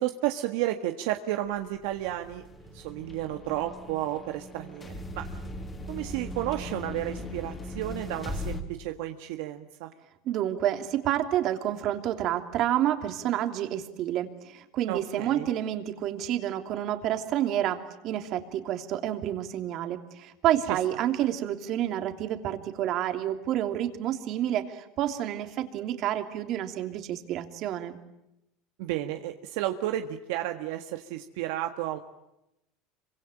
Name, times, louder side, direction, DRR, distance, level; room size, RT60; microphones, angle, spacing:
voice 1, 0.0-2.4 2.7-5.4 5.9-9.9 14.9-15.5 20.7-20.8 28.8-32.0, right 13 dB, 80° right, 6 dB, 1.6 m, -32 dB
sound 1, 1.6-8.6, left 1 dB, 20° left, 3.5 m, -39 dB
voice 2, 10.3-28.0, right 11 dB, 50° right, 7 dB, 3.0 m, -29 dB
26.5 x 25.0 x 9.0 m, 0.88 s
supercardioid pair, 130°, 0 cm